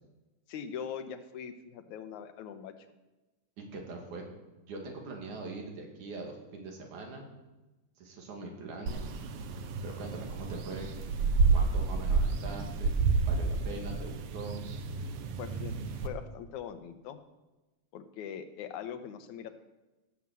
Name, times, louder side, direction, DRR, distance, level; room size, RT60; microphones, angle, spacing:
voice 1, 0.5-2.7 15.4-17.2 17.9-19.5, left 8 dB, 80° left, 9 dB, 2.4 m, -41 dB
voice 2, 3.6-4.2 4.7-7.3 8.0-9.1 9.8-10.9 11.5-12.9 13.3-14.6, right 3 dB, 85° right, 1 dB, 3.8 m, -42 dB
sound 1, 8.9-16.1, right 4 dB, 65° right, 1.7 m, -30 dB
16.5 x 7.4 x 7.6 m, 1.1 s
omnidirectional pair, 3.4 m